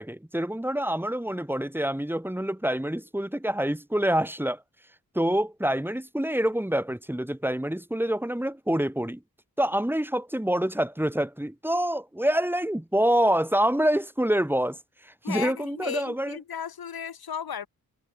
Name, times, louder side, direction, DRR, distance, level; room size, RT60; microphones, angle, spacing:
voice 1, 0.0-4.6 5.1-9.2 9.6-14.8 15.3-16.4, right 1 dB, 5° right, 3.1 m, -26 dB
voice 2, 15.2-17.7, left 8 dB, 85° left, 2.7 m, -35 dB
wide cardioid pair, 95°, 36 cm